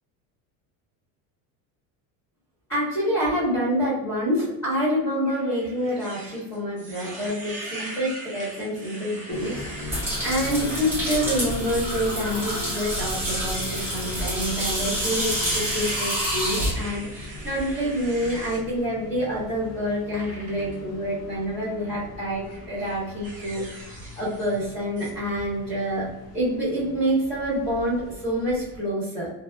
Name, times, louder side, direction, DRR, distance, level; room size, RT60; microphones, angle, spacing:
voice 1, 2.7-29.3, equal, 10° left, -10 dB, 1.2 m, -27 dB
sound 1, 5.2-10.0 10.5-10.9 11.3-11.4 12.5-18.6 20.1-20.8 21.7-22.0 22.4-24.7 25.0-25.1, right 2 dB, 20° right, 0.5 m, -40 dB
sound 2, 9.3-28.8, left 1 dB, 45° left, 0.5 m, -39 dB
sound 3, 9.9-16.7, equal, 5° right, 0.8 m, -28 dB
3.1 x 2.1 x 2.3 m, 0.97 s
cardioid pair, 160°, 38 cm